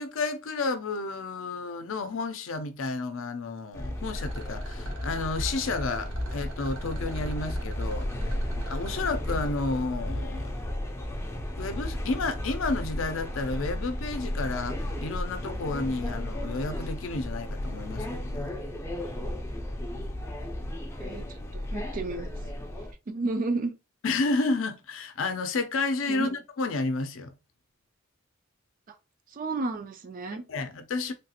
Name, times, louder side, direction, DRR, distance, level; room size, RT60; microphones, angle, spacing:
voice 1, 0.0-8.1 8.7-10.5 11.6-18.6 24.0-27.3 30.5-31.1, left 3 dB, 70° left, 0.5 m, -31 dB
sound 1, 3.7-22.9, left 1 dB, 15° left, 0.5 m, -34 dB
Rattle, 4.1-9.1, right 2 dB, 75° right, 0.8 m, -47 dB
voice 2, 19.0-19.3 21.0-22.3 23.1-23.7 26.1-26.4 29.3-30.4, right 3 dB, 40° right, 0.4 m, -32 dB
3.2 x 2.4 x 2.8 m
head